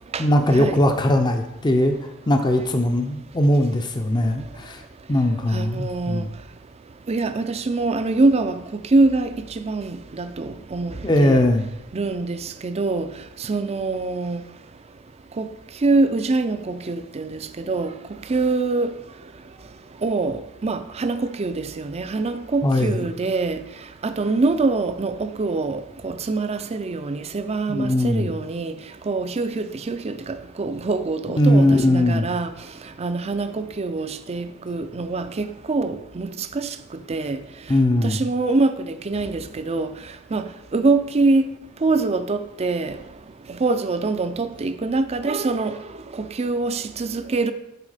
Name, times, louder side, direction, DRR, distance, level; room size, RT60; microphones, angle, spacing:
voice 1, 0.2-1.9 2.3-4.8 5.1-6.3 11.0-11.7 22.6-23.1 27.7-28.3 31.4-32.3 37.7-38.2, left 1 dB, 20° left, 0.5 m, -19 dB
voice 2, 5.5-6.2 7.1-9.3 9.6-10.9 11.2-11.4 11.9-12.4 12.6-13.1 13.5-14.4 15.4-15.5 15.8-17.4 17.7-17.9 18.3-18.9 20.0-23.6 24.0-28.7 29.1-32.5 33.0-36.3 36.6-36.7 37.1-37.4 38.0-38.8 39.1-39.9 40.3-40.5 40.7-41.5 41.8-42.9 43.6-45.8 46.2-47.5, right 3 dB, 30° right, 0.5 m, -24 dB
11.0 x 4.3 x 4.9 m
head